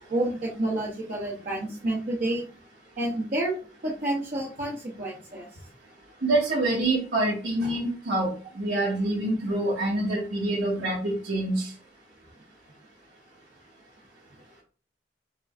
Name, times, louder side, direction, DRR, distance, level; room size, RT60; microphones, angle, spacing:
voice 1, 0.1-2.5 3.0-3.5 3.8-5.6, right 1 dB, 45° right, -5 dB, 0.8 m, -29 dB
voice 2, 6.2-11.7, right 2 dB, 85° right, -7 dB, 1.5 m, -26 dB
5.1 x 3.1 x 2.4 m, 0.37 s
head